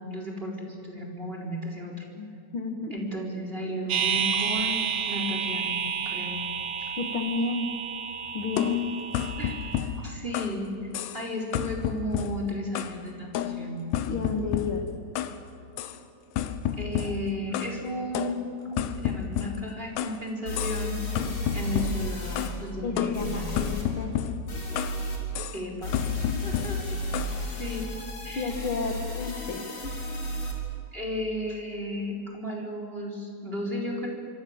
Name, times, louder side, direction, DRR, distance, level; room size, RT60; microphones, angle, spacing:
voice 1, 0.0-2.0 2.9-4.8 5.1-5.8 6.0-6.4 6.8-6.9 9.4-10.7 11.1-13.8 16.7-18.5 18.8-21.0 21.5-23.7 25.5-27.0 27.5-27.9 28.2-28.5 30.9-34.1, equal, 15° right, 0 dB, 3.8 m, -34 dB
voice 2, 2.5-3.0 7.0-7.7 8.3-8.8 14.1-14.9 22.8-23.7 24.0-24.1 28.3-29.9, left 3 dB, 55° left, 3 dB, 1.4 m, -31 dB
sound 1, 3.9-9.8, right 7 dB, 60° right, 3.0 m, -30 dB
sound 2, 8.6-10.6 10.9-11.3 11.5-13.0 13.3-15.4 15.8-16.0 16.4-17.8 18.1-20.2 20.6-20.9 21.2-22.6 23.0-25.0 25.3-25.6 25.9-27.4, left 10 dB, 85° left, 3.2 m, -31 dB
sound 3, 19.8-19.9 20.5-22.5 23.1-23.8 24.5-25.2 25.8-30.5, left 1 dB, 30° left, 4.5 m, -33 dB
26.0 x 26.0 x 7.3 m, 2.7 s
omnidirectional pair, 4.8 m